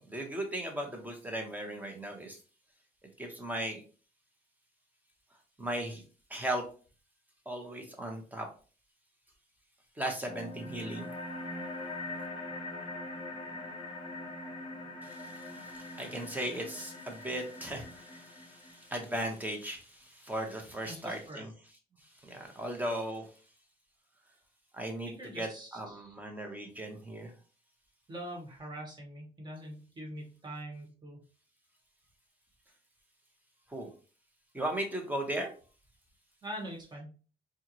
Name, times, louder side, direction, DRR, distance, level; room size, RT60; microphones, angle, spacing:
voice 1, 0.0-2.4 3.2-3.8 5.6-6.0 6.3-6.6 7.5-8.5 10.0-11.1 15.0-21.5 22.2-23.3 24.7-27.3 33.7-33.9 34.5-35.5, right 1 dB, 10° right, 2 dB, 1.1 m, -37 dB
sound 1, 10.2-19.3, left 2 dB, 30° left, 1.0 m, -42 dB
voice 2, 20.8-21.4 25.0-26.1 28.1-31.2 36.4-37.2, right 1 dB, 25° right, 0 dB, 1.6 m, -43 dB
4.5 x 2.4 x 3.0 m, 0.37 s
cardioid pair, 110°, 17 cm